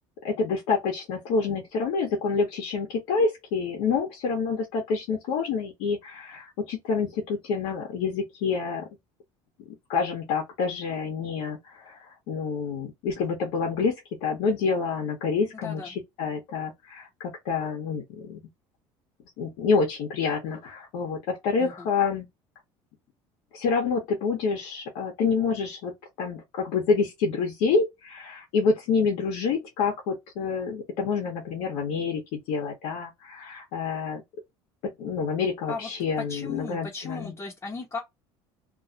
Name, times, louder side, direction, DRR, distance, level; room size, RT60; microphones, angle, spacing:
voice 1, 0.2-8.9 9.9-13.9 14.2-18.4 19.4-22.3 23.5-25.9 26.2-34.2 34.8-37.3, left 5 dB, 80° left, 1.1 m, -27 dB
voice 2, 36.2-38.0, left 5 dB, 25° left, 0.9 m, -35 dB
2.7 x 2.3 x 2.6 m
cardioid pair, 125°, 12 cm